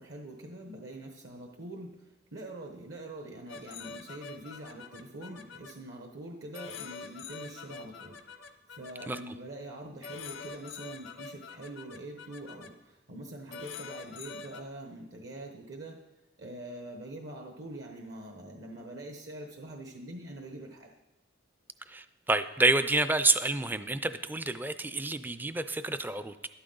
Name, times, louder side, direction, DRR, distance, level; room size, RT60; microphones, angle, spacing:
voice 1, 0.0-1.9 2.3-16.0 16.4-20.9, right 1 dB, 60° right, 2 dB, 1.0 m, -44 dB
sound 1, 3.5-5.7 6.5-9.2 10.0-12.7 13.5-14.6, left 5 dB, 85° left, 0.9 m, -45 dB
voice 2, 21.9-26.3, right 2 dB, 10° right, 11 dB, 0.3 m, -28 dB
12.5 x 12.0 x 3.9 m, 1.0 s
head